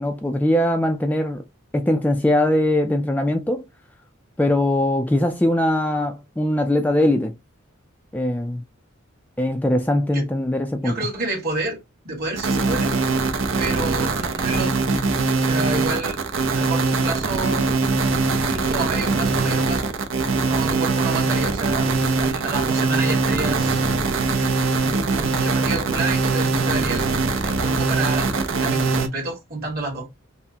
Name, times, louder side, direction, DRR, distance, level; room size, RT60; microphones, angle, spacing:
voice 1, 0.0-1.4 1.7-3.6 4.4-7.3 8.1-8.6 9.4-10.9, left 1 dB, 10° left, 0.3 m, -21 dB
voice 2, 10.8-11.8 12.0-13.0 13.6-15.0 15.3-16.2 16.6-17.7 18.4-19.9 20.4-23.8 24.4-27.1 27.4-30.1, right 3 dB, 45° right, 1.8 m, -29 dB
sound 1, 12.4-29.1, right 3 dB, 70° right, 0.7 m, -22 dB
5.6 x 2.1 x 2.8 m
head